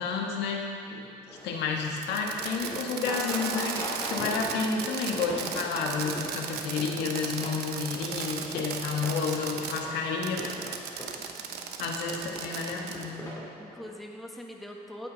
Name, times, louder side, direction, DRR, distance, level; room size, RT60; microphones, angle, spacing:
voice 1, 0.0-1.1 1.4-3.8 4.1-11.2 11.8-13.2, left 5 dB, 85° left, 1 dB, 1.7 m, -31 dB
voice 2, 0.9-1.3 10.7-11.7 13.6-15.1, equal, ahead, 0 dB, 1.5 m, -45 dB
sound 1, 1.3-13.9, equal, 20° left, 2.8 m, -41 dB
Fireworks, 2.0-9.8 10.2-13.1, right 7 dB, 75° right, 1.0 m, -36 dB
18.0 x 8.7 x 4.1 m, 2.2 s
cardioid pair, 110°, 17 cm